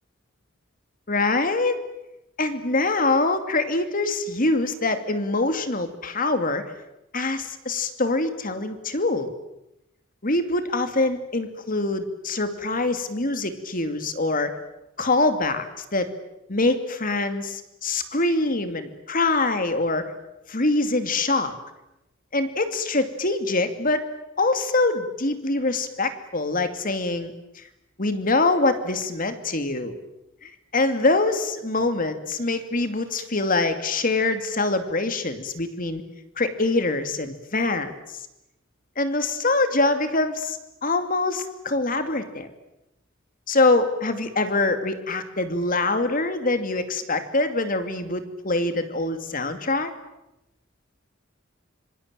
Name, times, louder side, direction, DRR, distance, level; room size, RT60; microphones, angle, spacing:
voice 1, 1.1-1.7 2.4-6.7 7.1-9.3 10.2-14.6 15.0-16.1 16.5-20.1 20.5-21.5 22.3-24.0 24.4-27.3 28.0-30.0 30.4-36.0 36.4-37.9 39.0-42.5 43.5-49.9, left 2 dB, 45° left, 9 dB, 2.6 m, -24 dB
26.0 x 24.0 x 9.1 m, 0.92 s
head